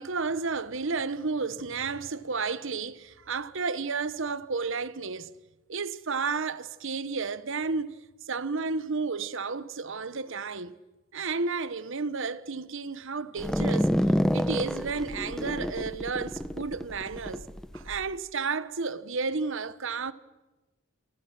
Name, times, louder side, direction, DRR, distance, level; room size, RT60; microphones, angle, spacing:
voice 1, 0.0-5.3 5.7-8.0 8.3-10.7 11.1-13.9 14.3-17.4 17.7-20.1, right 4 dB, 65° right, 1.1 m, -32 dB
sound 1, 13.4-18.0, equal, 5° left, 0.7 m, -28 dB
28.0 x 25.0 x 6.0 m
head